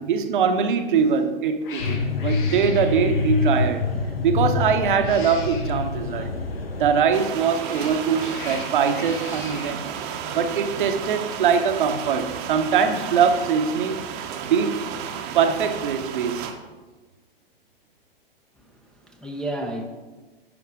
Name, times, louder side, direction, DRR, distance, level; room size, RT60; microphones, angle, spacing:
voice 1, 0.0-3.9 4.2-6.3 6.8-9.9 10.3-14.0 14.4-14.9 15.3-16.5, right 6 dB, 60° right, 7 dB, 0.9 m, -22 dB
Cat, 0.9-1.2 1.6-3.7 4.8-5.9 7.2-9.8, left 4 dB, 60° left, 1.3 m, -40 dB
sound 1, 1.8-7.0, left 4 dB, 85° left, 0.8 m, -26 dB
sound 2, 7.1-16.5, right 8 dB, 35° right, 0.8 m, -33 dB
voice 2, 18.6-19.9, right 1 dB, 5° left, 0 dB, 0.6 m, -32 dB
9.6 x 5.8 x 3.6 m, 1.2 s
figure-of-eight pair, 105°, 29 cm